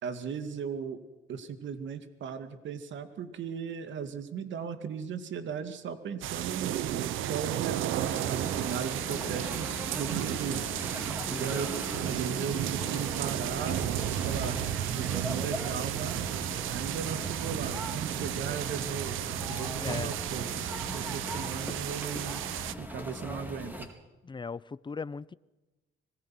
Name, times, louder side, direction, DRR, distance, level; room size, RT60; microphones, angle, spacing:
voice 1, 0.0-1.0 1.3-10.7 11.3-11.7 12.0-13.8 14.2-14.6 14.9-16.1 16.7-22.4 22.8-23.9, right 6 dB, 70° right, 2.4 m, -37 dB
sound 1, 6.2-22.7, right 12 dB, 90° right, 1.0 m, -33 dB
sound 2, 8.0-23.9, equal, 10° right, 4.4 m, -40 dB
voice 2, 11.3-11.7 19.8-20.1 24.2-25.3, left 4 dB, 25° left, 0.8 m, -38 dB
25.5 x 20.5 x 6.1 m
cardioid pair, 90°, 20 cm